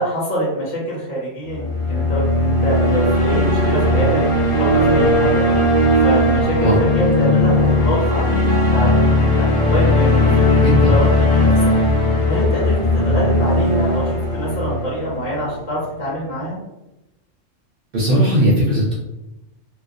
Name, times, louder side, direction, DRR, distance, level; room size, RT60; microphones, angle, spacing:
voice 1, 0.0-4.3 4.6-5.4 6.0-10.6 10.9-11.8 12.3-16.6, equal, 75° left, -6 dB, 1.1 m, -25 dB
sound 1, 1.5-15.7, left 1 dB, 40° left, 0.4 m, -17 dB
voice 2, 10.6-11.0 17.9-18.9, right 1 dB, 60° right, -4 dB, 0.6 m, -17 dB
2.4 x 2.2 x 2.4 m, 0.96 s
omnidirectional pair, 1.3 m